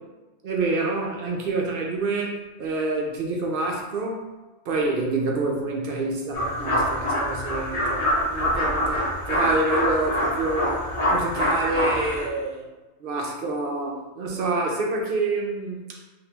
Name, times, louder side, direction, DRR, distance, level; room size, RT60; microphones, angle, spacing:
voice 1, 0.4-4.2 4.7-8.0 8.3-12.6 13.0-16.0, right 3 dB, 60° right, 0 dB, 0.6 m, -27 dB
sound 1, 6.3-12.3, equal, 65° left, 1.3 m, -25 dB
3.3 x 2.7 x 2.8 m, 1.1 s
omnidirectional pair, 1.3 m